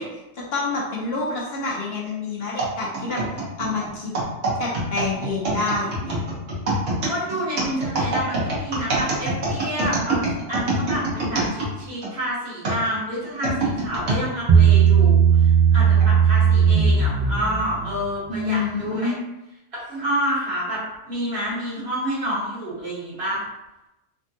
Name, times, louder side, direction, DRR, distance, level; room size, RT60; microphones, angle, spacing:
voice 1, 0.0-4.1 4.6-6.2 18.3-19.2, left 3 dB, 60° left, -4 dB, 0.9 m, -27 dB
sound 1, 2.6-12.1 12.6-14.2 14.9-15.0 15.8-16.1, right 2 dB, 85° right, 1.3 m, -25 dB
voice 2, 7.1-19.1 19.9-23.4, equal, 60° right, -8 dB, 1.4 m, -28 dB
Bass guitar, 14.5-17.9, right 7 dB, 45° right, 0.5 m, -16 dB
3.5 x 2.2 x 2.6 m, 0.93 s
omnidirectional pair, 1.2 m